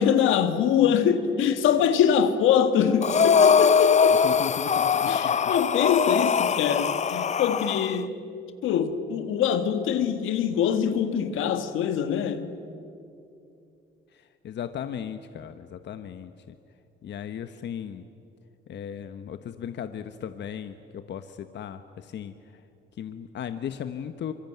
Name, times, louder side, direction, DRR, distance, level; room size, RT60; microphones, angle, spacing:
voice 1, 0.0-4.2 5.1-8.1 8.6-12.5, left 8 dB, 85° left, 1.7 m, -24 dB
Breathing, 3.0-8.0, left 6 dB, 35° left, 0.6 m, -22 dB
voice 2, 4.2-5.5 14.1-16.3 17.0-18.0 18.7-22.4 23.0-24.3, left 8 dB, 60° left, 1.1 m, -36 dB
25.5 x 23.0 x 9.3 m
cardioid pair, 90°, 20 cm